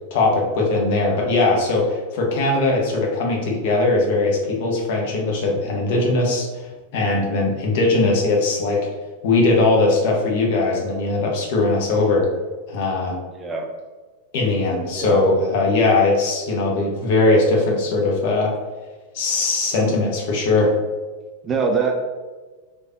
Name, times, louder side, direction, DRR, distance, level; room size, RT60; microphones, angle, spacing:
voice 1, 0.1-6.5 6.9-8.8 9.2-12.3 12.7-13.2 14.3-18.5 19.1-20.7, left 2 dB, 50° left, -1 dB, 0.6 m, -20 dB
voice 2, 13.4-13.7 14.9-15.2 21.4-21.9, right 5 dB, 20° right, 3 dB, 0.3 m, -23 dB
3.1 x 2.2 x 2.6 m, 1.3 s
figure-of-eight pair, 90°, 0 cm